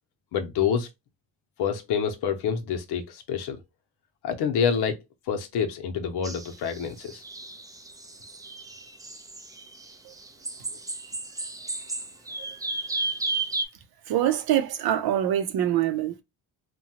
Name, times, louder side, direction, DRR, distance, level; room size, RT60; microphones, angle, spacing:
voice 1, 0.3-0.9 1.6-3.6 4.2-5.0 5.3-7.2, left 7 dB, 75° left, 0.8 m, -27 dB
sound 1, 6.2-13.6, right 2 dB, 10° right, 0.4 m, -34 dB
voice 2, 14.1-16.2, right 11 dB, 65° right, 0.6 m, -25 dB
2.8 x 2.3 x 2.8 m
cardioid pair, 95°, 40 cm